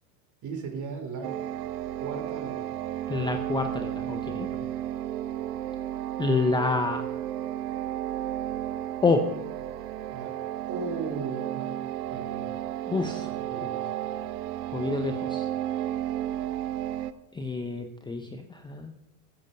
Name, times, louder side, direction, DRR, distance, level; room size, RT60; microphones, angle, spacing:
voice 1, 0.4-1.4 2.0-2.7 10.1-10.4 10.7-12.5 13.4-13.9, right 4 dB, 35° right, 4 dB, 3.2 m, -37 dB
sound 1, 1.2-17.1, right 12 dB, 70° right, 0.9 m, -33 dB
voice 2, 3.1-4.7 6.2-7.0 9.0-9.2 12.9-13.3 14.7-15.5 17.3-18.9, left 3 dB, 10° left, 6 dB, 0.5 m, -28 dB
15.5 x 7.5 x 5.5 m, 0.92 s
supercardioid pair, 115°, 48 cm